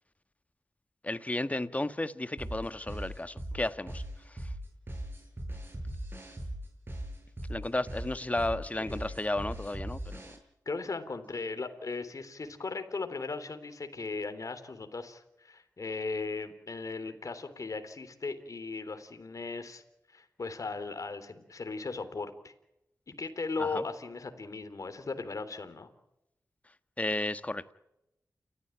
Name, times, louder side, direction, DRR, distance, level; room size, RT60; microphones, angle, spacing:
voice 1, 1.0-4.5 7.5-10.2 23.6-23.8 27.0-27.7, left 2 dB, 20° left, 12 dB, 1.4 m, -33 dB
sound 1, 2.4-10.4, right 1 dB, 35° right, 7.6 m, -39 dB
voice 2, 8.8-9.1 10.7-19.8 20.1-22.5 23.1-25.9, left 4 dB, 55° left, 9 dB, 3.5 m, -37 dB
29.5 x 14.5 x 9.1 m, 0.88 s
cardioid pair, 60°, 7 cm